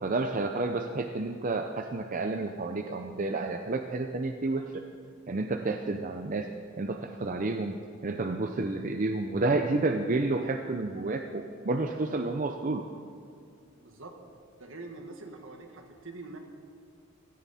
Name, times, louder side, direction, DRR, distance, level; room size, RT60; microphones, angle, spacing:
voice 1, 0.0-4.6 5.3-6.5 6.8-7.7 8.0-12.8, right 2 dB, 40° right, 5 dB, 0.6 m, -30 dB
voice 2, 13.8-14.2 14.6-16.4, right 2 dB, 70° right, 4 dB, 1.7 m, -44 dB
17.0 x 14.0 x 4.3 m, 2.4 s
head